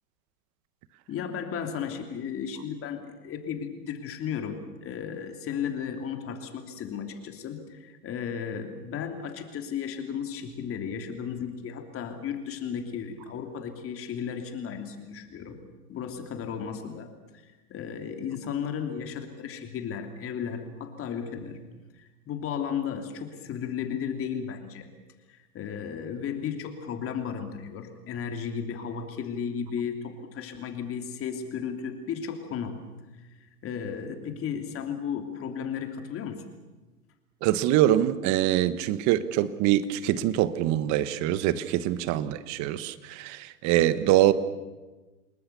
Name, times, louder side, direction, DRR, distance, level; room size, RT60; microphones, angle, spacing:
voice 1, 1.1-15.6 15.9-21.6 21.9-24.9 25.3-32.8 33.4-36.4, left 7 dB, 30° left, 3.1 m, -34 dB
voice 2, 37.4-44.3, right 13 dB, 35° right, 1.4 m, -24 dB
29.0 x 20.0 x 7.0 m
hypercardioid pair, 125°, 47 cm